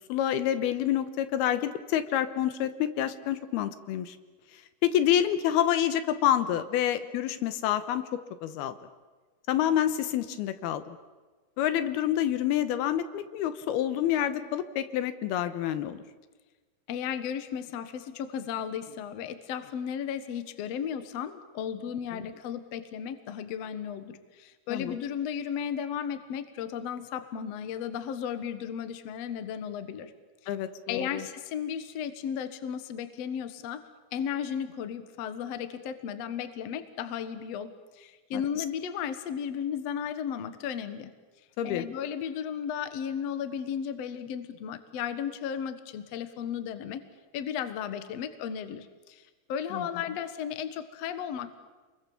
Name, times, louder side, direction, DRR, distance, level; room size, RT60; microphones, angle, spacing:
voice 1, 0.1-4.2 4.8-8.8 9.5-11.0 11.6-16.0 22.1-22.3 24.7-25.0 30.5-31.2 38.3-38.6 41.6-41.8 49.7-49.9, left 11 dB, 80° left, 11 dB, 3.0 m, -28 dB
voice 2, 16.9-30.1 30.9-33.8 34.1-41.1 41.6-47.0 47.3-49.2 49.5-51.6, left 8 dB, 60° left, 10 dB, 1.9 m, -35 dB
28.0 x 22.0 x 7.2 m, 1.3 s
omnidirectional pair, 4.4 m